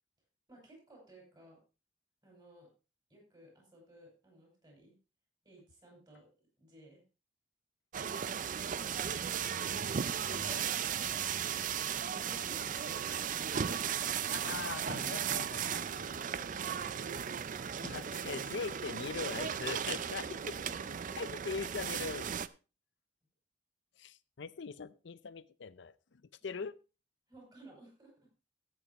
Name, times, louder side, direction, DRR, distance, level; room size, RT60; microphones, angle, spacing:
voice 1, 0.5-1.6 2.2-2.7 3.1-4.9 5.4-6.3 6.6-7.0 11.9-14.5 16.3-17.4 20.1-22.0 26.4-26.6 27.3-28.3, right 2 dB, 25° right, -1 dB, 6.0 m, -58 dB
sound 1, 7.9-22.5, right 8 dB, 45° right, 0.4 m, -36 dB
voice 2, 10.2-10.7 12.3-12.4 14.3-16.3 17.8-20.5 21.2-22.3 24.0-26.8, left 5 dB, 70° left, 16 dB, 0.5 m, -42 dB
14.0 x 9.1 x 2.9 m, 0.31 s
head